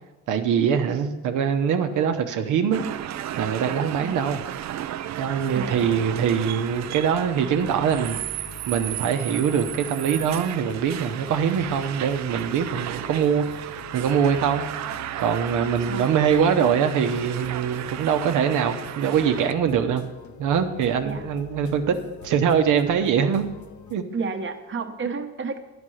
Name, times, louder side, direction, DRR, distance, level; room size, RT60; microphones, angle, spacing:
voice 1, 0.3-2.8 3.4-4.4 5.2-14.7 15.2-20.0 20.4-21.9 22.2-23.5 23.9-24.0, right 7 dB, 85° right, 7 dB, 0.9 m, -23 dB
sound 1, 2.7-19.5, right 12 dB, 65° right, 0.5 m, -34 dB
sound 2, 7.5-24.0, left 6 dB, 75° left, 1.0 m, -45 dB
voice 2, 15.9-16.3 19.2-19.4 21.0-21.3 24.1-25.6, right 4 dB, 40° right, 6 dB, 1.1 m, -31 dB
9.8 x 5.2 x 7.7 m, 1.1 s
cardioid pair, 90°, 30 cm